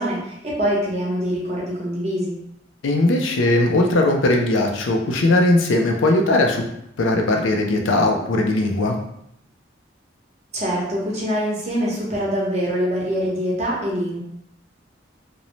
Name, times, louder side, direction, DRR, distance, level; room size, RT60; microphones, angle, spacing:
voice 1, 0.0-2.3 10.5-14.2, equal, 35° right, -5 dB, 0.8 m, -24 dB
voice 2, 2.8-6.6 7.0-8.9, left 2 dB, 90° left, 2 dB, 0.4 m, -19 dB
2.6 x 2.0 x 3.0 m, 0.76 s
head